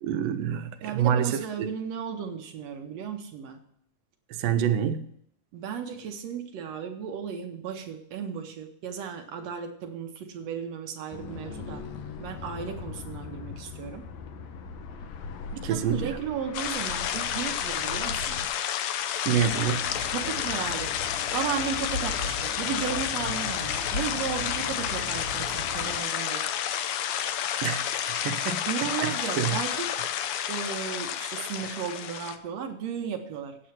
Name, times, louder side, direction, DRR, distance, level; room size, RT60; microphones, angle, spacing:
voice 1, 0.0-1.7 4.3-5.1 15.6-16.2 19.3-19.9 27.6-28.7 29.0-29.6 31.6-31.7, right 9 dB, 90° right, 2.5 m, -27 dB
voice 2, 0.8-3.6 5.5-11.8 12.2-14.0 15.5-18.4 20.1-20.9 21.3-26.4 28.7-29.8 30.5-33.6, right 7 dB, 70° right, 1.7 m, -34 dB
sound 1, 11.1-18.5, left 5 dB, 70° left, 2.0 m, -40 dB
sound 2, 16.5-32.4, left 10 dB, 85° left, 1.5 m, -30 dB
sound 3, 19.3-26.0, left 2 dB, 45° left, 2.1 m, -37 dB
8.9 x 7.8 x 5.8 m
omnidirectional pair, 3.9 m